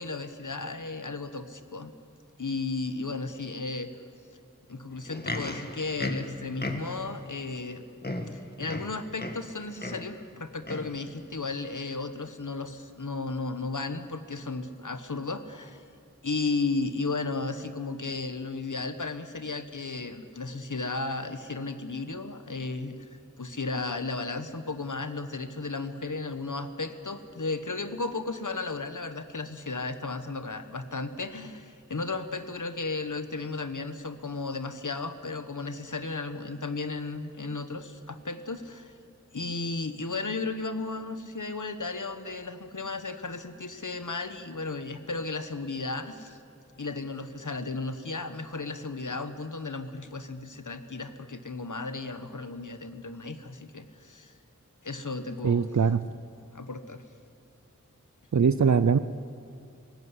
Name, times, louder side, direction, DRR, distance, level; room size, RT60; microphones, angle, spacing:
voice 1, 0.0-1.9 2.4-3.9 4.7-7.8 8.3-15.8 16.2-23.0 23.4-38.9 39.3-46.4 46.8-54.3 54.8-55.7 56.5-57.0, left 3 dB, 70° left, 9 dB, 1.2 m, -34 dB
Livestock farm animals working animals, 4.9-7.1 7.7-7.8 8.0-9.5 9.8-10.1 10.6-11.0 11.7-11.8, left 1 dB, 30° left, 1.7 m, -35 dB
voice 2, 55.4-56.0 58.3-59.0, right 6 dB, 65° right, 13 dB, 0.5 m, -21 dB
18.5 x 15.5 x 9.7 m, 2.4 s
wide cardioid pair, 40°, 31 cm